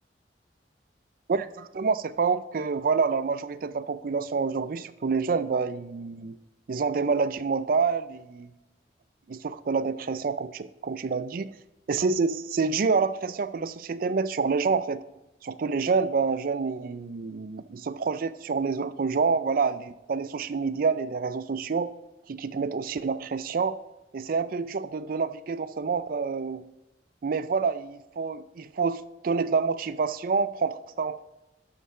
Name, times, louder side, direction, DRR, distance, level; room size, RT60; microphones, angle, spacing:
voice 1, 1.3-6.4 6.7-8.5 9.3-11.5 11.9-15.0 15.4-21.9 22.3-23.8 24.1-26.6 27.2-31.2, right 5 dB, 55° right, 14 dB, 0.4 m, -27 dB
11.0 x 6.4 x 3.7 m, 0.99 s
head